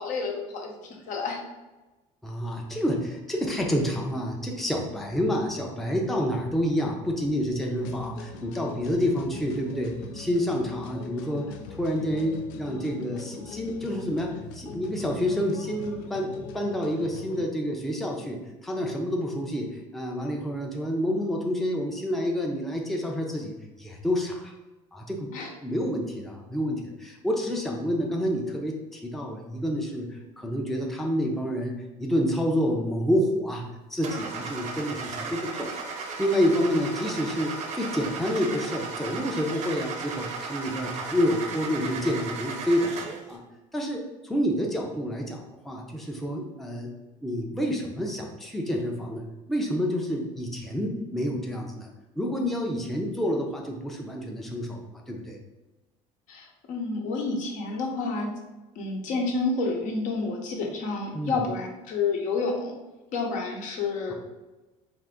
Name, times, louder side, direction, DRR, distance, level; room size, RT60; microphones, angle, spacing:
voice 1, 0.0-1.4 25.3-25.5 56.3-58.3 58.7-62.7 63.1-64.1, left 4 dB, 65° left, 1 dB, 0.9 m, -29 dB
voice 2, 2.2-24.5 24.9-25.3 25.6-35.7 36.2-42.9 43.3-43.4 43.7-46.9 47.2-51.9 52.2-55.4 61.1-61.4 64.1-64.2, equal, ahead, -1 dB, 0.5 m, -28 dB
sound 1, 7.8-17.5, left 5 dB, 85° left, 0.5 m, -42 dB
Car / Engine starting, 34.0-43.3, right 4 dB, 60° right, 0.7 m, -35 dB
3.7 x 2.5 x 3.6 m, 1.1 s
cardioid pair, 120°, 14 cm